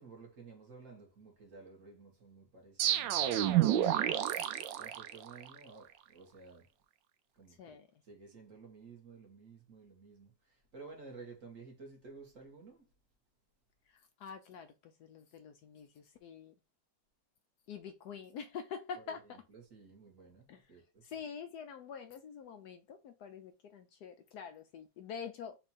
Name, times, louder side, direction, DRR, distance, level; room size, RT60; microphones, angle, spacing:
voice 1, 0.0-4.2 4.8-6.6 7.4-7.8 8.1-10.3 10.7-12.8 19.5-20.8, right 4 dB, 45° right, 1.6 m, -53 dB
sound 1, 2.8-5.6, right 11 dB, 80° right, 1.2 m, -30 dB
voice 2, 14.2-14.7 15.0-16.5 17.7-19.4 20.5-20.6 21.0-25.6, left 6 dB, 70° left, 1.0 m, -46 dB
4.4 x 2.5 x 4.1 m
omnidirectional pair, 2.0 m